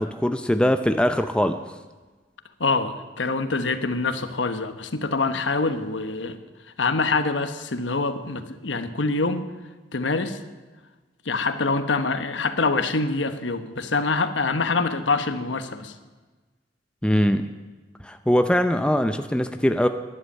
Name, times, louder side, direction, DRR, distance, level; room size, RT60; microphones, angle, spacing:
voice 1, 0.0-1.6 17.0-17.6 18.0-19.9, equal, 5° left, 8 dB, 0.5 m, -22 dB
voice 2, 2.6-6.4 6.8-9.5 9.9-10.4 11.2-15.9, left 3 dB, 85° left, 9 dB, 1.1 m, -25 dB
13.0 x 11.5 x 8.8 m, 1.3 s
head